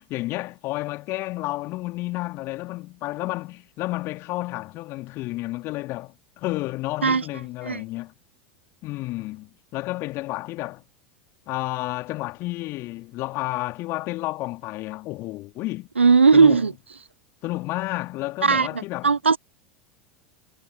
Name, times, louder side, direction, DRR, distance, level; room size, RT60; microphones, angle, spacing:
voice 1, 0.0-8.1 8.8-10.8 11.5-15.9 16.3-16.6 17.4-19.1, left 19 dB, 45° left, 2.8 m, -31 dB
voice 2, 16.0-16.7 18.4-18.7 19.0-19.4, right 5 dB, 85° right, 0.9 m, -16 dB
figure-of-eight pair, 85°, 6 cm